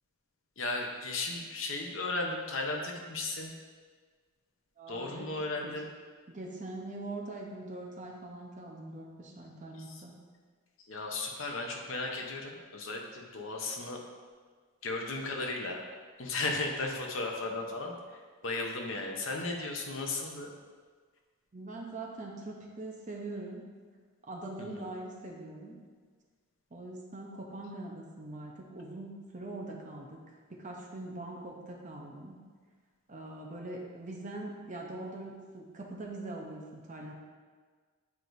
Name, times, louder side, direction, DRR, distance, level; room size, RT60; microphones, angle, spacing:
voice 1, 0.6-3.5 4.9-5.8 10.9-14.0 14.8-15.8 16.2-17.9 18.4-20.5 24.6-24.9, left 2 dB, 60° left, 1 dB, 0.8 m, -35 dB
voice 2, 4.8-5.3 5.6-5.7 6.3-10.1 21.5-23.7 24.3-25.8 26.7-30.2 30.5-32.4 33.1-37.1, right 2 dB, 35° right, -1 dB, 0.7 m, -42 dB
8.3 x 4.6 x 2.6 m, 1.5 s
head